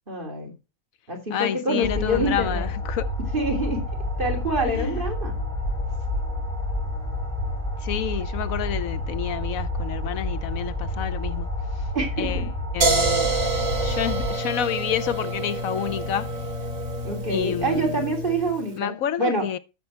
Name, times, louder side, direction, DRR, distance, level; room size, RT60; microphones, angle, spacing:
voice 1, 0.1-0.5 1.1-2.7 3.3-3.8 4.2-5.4 11.9-12.5 17.0-19.5, right 1 dB, 40° right, 3.2 m, -26 dB
voice 2, 1.3-3.1 4.7-5.0 7.8-11.9 12.2-12.4 12.7-13.3 13.8-16.4 17.3-18.0 18.8-19.6, left 10 dB, 80° left, 1.1 m, -29 dB
sound 1, 1.8-14.3, left 1 dB, ahead, 5.8 m, -29 dB
sound 2, 12.8-18.6, right 2 dB, 70° right, 2.6 m, -27 dB
12.0 x 6.9 x 4.3 m
omnidirectional pair, 1.4 m